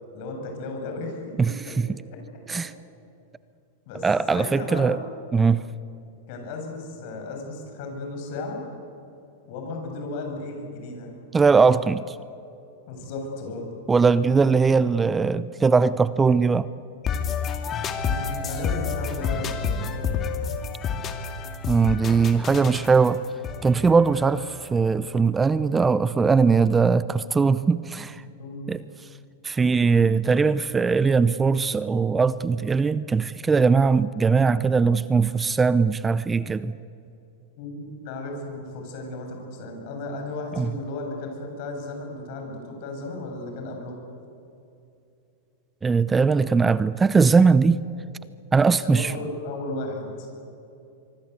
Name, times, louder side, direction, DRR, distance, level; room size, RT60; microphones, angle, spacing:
voice 1, 0.1-1.4 1.7-1.8 2.1-2.2 3.9-4.9 6.3-8.6 9.4-11.1 12.9-13.7 18.0-19.9 28.4-28.6 37.6-44.0 48.8-50.3, left 2 dB, 55° left, 3 dB, 7.8 m, -34 dB
voice 2, 1.4-1.9 2.5-2.7 4.0-5.0 5.3-5.6 11.3-12.2 13.9-16.7 21.7-23.2 23.6-28.2 28.7-28.8 29.4-36.7 40.5-40.7 45.8-47.8 48.5-49.1, right 5 dB, 15° right, 16 dB, 0.7 m, -20 dB
sound 1, 17.0-24.9, left 6 dB, 30° left, 2.4 m, -30 dB
24.5 x 23.5 x 8.3 m, 2.7 s
hypercardioid pair, 100°, 0 cm